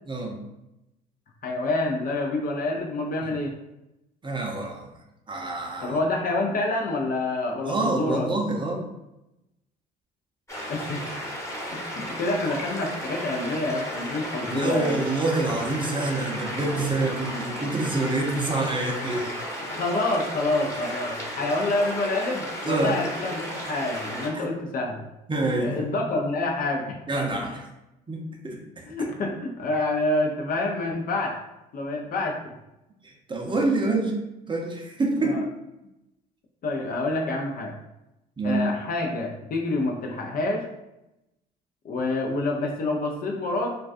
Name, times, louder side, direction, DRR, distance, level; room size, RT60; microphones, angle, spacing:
voice 1, 0.1-0.4 3.2-3.3 4.2-4.9 5.3-6.0 7.6-8.8 14.4-19.3 22.6-23.0 24.3-24.4 25.3-25.8 27.1-27.6 28.1-28.8 33.0-34.1 34.5-35.4 38.4-38.7, right 2 dB, 25° right, 0 dB, 0.6 m, -27 dB
voice 2, 1.4-3.6 5.8-8.3 10.7-11.1 11.7-15.0 19.7-25.0 25.6-27.0 28.9-31.4 31.7-32.5 35.2-35.4 36.6-37.7 38.4-40.7 41.8-43.8, left 2 dB, 45° left, 1 dB, 0.5 m, -27 dB
sound 1, 10.5-24.3, equal, 15° left, 0.9 m, -34 dB
2.3 x 2.3 x 2.5 m, 0.91 s
hypercardioid pair, 60°, 21 cm